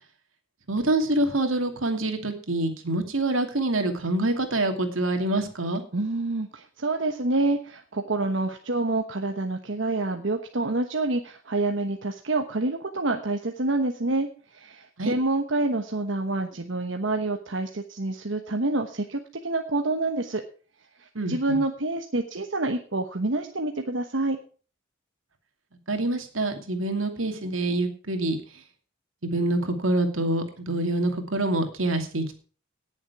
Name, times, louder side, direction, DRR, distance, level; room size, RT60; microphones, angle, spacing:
voice 1, 0.7-5.8 15.0-15.1 21.1-21.6 25.9-28.4 29.2-32.4, right 2 dB, 85° right, 6 dB, 2.6 m, -26 dB
voice 2, 5.9-20.4 21.0-24.4, right 2 dB, 65° right, 4 dB, 1.2 m, -27 dB
18.0 x 7.3 x 4.7 m, 0.40 s
head